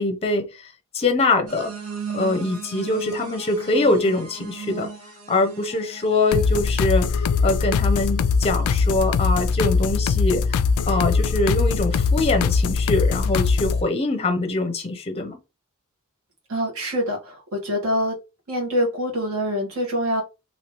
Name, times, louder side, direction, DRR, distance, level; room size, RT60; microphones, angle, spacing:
voice 1, 0.0-1.7 2.1-4.9 5.3-10.5 10.9-15.4, left 2 dB, 30° left, 0.5 m, -23 dB
sound 1, 1.5-6.9, right 6 dB, 90° right, 1.1 m, -37 dB
sound 2, 6.3-13.8, left 5 dB, 85° left, 0.3 m, -21 dB
voice 2, 16.5-18.1 18.5-20.2, equal, 70° right, 1.4 m, -25 dB
3.1 x 2.7 x 2.9 m
head